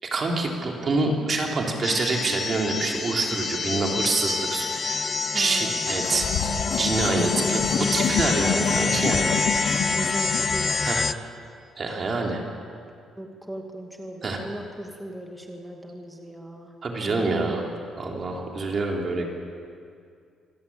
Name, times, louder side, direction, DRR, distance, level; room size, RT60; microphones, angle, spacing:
voice 1, 0.0-6.3 6.7-7.6 7.9-9.4 10.8-11.0 11.8-12.4 14.2-14.4 16.8-17.6 18.0-19.3, right 3 dB, 30° right, 0 dB, 3.3 m, -26 dB
sound 1, 1.8-11.1, left 4 dB, 25° left, 0.5 m, -27 dB
voice 2, 5.3-6.0 7.4-8.1 9.8-11.0 13.2-16.7 17.0-17.6, right 1 dB, 5° right, 1 dB, 2.2 m, -37 dB
sound 2, 5.9-10.8, left 6 dB, 75° left, 2.8 m, -28 dB
26.5 x 17.0 x 8.6 m, 2.3 s
cardioid pair, 165°, 0 cm